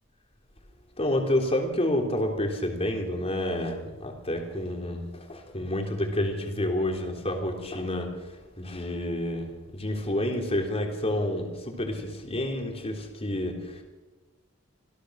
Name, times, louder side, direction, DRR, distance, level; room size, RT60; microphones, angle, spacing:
voice 1, 1.0-8.1 8.6-13.6, left 1 dB, 30° left, 3 dB, 3.6 m, -29 dB
26.5 x 16.5 x 6.5 m, 1.2 s
head